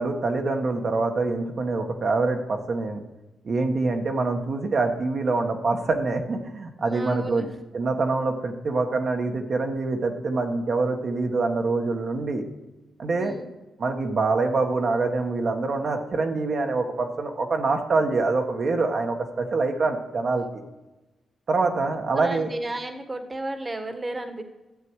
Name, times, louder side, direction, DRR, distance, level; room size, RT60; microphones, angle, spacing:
voice 1, 0.0-3.0 3.4-7.5 7.7-12.4 13.0-13.3 13.8-20.6 21.5-22.5, right 3 dB, 55° right, 3 dB, 1.3 m, -25 dB
voice 2, 6.8-7.5 13.2-13.5 22.1-24.4, right 2 dB, 25° right, 7 dB, 1.4 m, -33 dB
12.0 x 7.7 x 4.7 m, 1.1 s
cardioid pair, 70°, 0 cm